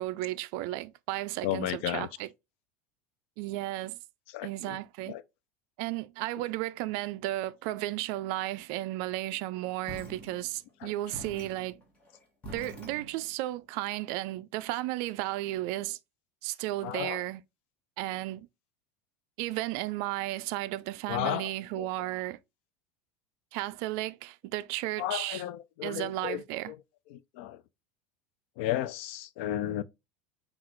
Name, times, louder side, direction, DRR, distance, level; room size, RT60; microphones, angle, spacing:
voice 1, 0.0-2.3 3.4-4.0 4.4-5.2 5.8-11.8 12.5-16.0 16.4-17.4 18.0-18.5 19.4-22.4 23.5-25.4 25.8-26.7, right 16 dB, 55° right, 0.3 m, -34 dB
voice 2, 1.4-2.1 4.3-4.8 5.1-5.2 10.8-10.9 16.8-17.2 21.1-21.5 21.8-21.9 25.0-26.8 27.1-27.6 28.6-29.8, left 13 dB, 65° left, 0.4 m, -33 dB
sound 1, 9.9-10.8 11.1-13.5, equal, 20° left, 1.2 m, -46 dB
5.8 x 2.4 x 3.0 m
supercardioid pair, 155°, 7 cm